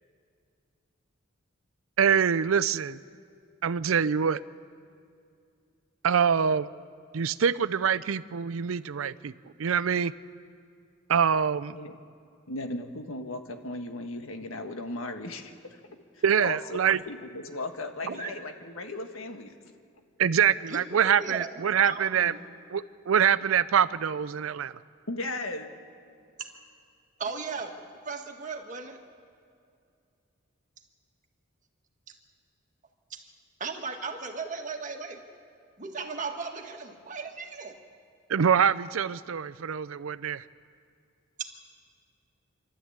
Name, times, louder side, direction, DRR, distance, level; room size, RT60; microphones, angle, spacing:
voice 1, 2.0-3.0 3.6-4.4 6.0-6.7 7.1-9.3 9.6-10.1 11.1-11.8 16.2-17.0 20.2-22.3 22.7-24.7 38.3-40.4, right 7 dB, 80° right, 15 dB, 0.5 m, -25 dB
voice 2, 12.5-15.8 16.1-16.8 17.0-19.6 25.1-25.7, left 2 dB, 90° left, 6 dB, 1.6 m, -36 dB
voice 3, 18.0-18.3 20.7-22.5 26.4-26.5 27.2-27.7 28.1-29.0 32.1-32.2 33.1-33.2 33.6-35.2 35.8-37.8 41.4-41.5, right 4 dB, 40° right, 3 dB, 1.7 m, -36 dB
26.5 x 12.5 x 8.8 m, 2.4 s
head